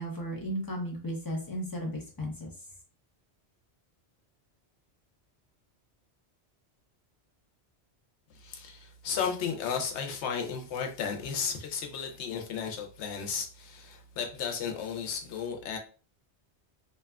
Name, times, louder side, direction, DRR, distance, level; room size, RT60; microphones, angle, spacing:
voice 1, 0.0-2.5, equal, 25° left, -1 dB, 0.5 m, -35 dB
voice 2, 8.4-15.8, left 6 dB, 85° left, 4 dB, 0.9 m, -34 dB
2.8 x 2.3 x 2.2 m, 0.37 s
omnidirectional pair, 1.1 m